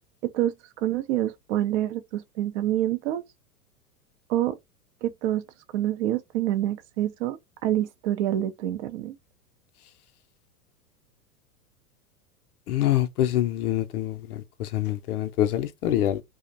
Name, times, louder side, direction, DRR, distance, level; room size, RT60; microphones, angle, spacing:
voice 1, 0.2-3.2 4.3-4.6 5.0-5.4 5.7-9.2, right 13 dB, 50° right, 0.5 m, -27 dB
voice 2, 12.7-16.2, left 12 dB, 75° left, 0.5 m, -25 dB
2.4 x 2.0 x 2.5 m
hypercardioid pair, 100°, 46 cm